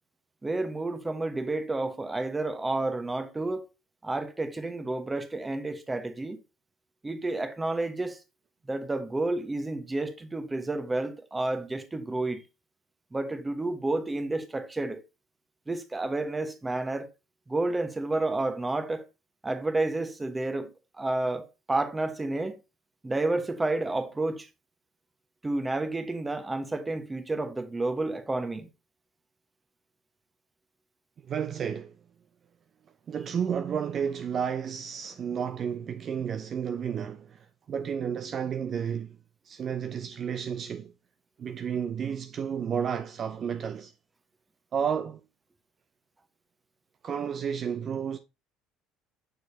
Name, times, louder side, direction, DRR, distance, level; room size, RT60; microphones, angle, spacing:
voice 1, 0.4-3.7 4.0-6.4 7.0-8.2 8.7-12.4 13.1-15.0 15.7-17.1 17.5-19.0 19.4-20.7 21.0-22.6 23.0-24.5 25.4-28.7, right 2 dB, 15° right, 1.2 m, -30 dB
voice 2, 31.3-31.9 33.1-39.2 39.4-40.9 41.4-43.9 44.7-45.2 47.0-48.2, right 7 dB, 45° right, 0.5 m, -31 dB
6.6 x 6.4 x 2.8 m
hypercardioid pair, 70°, 0 cm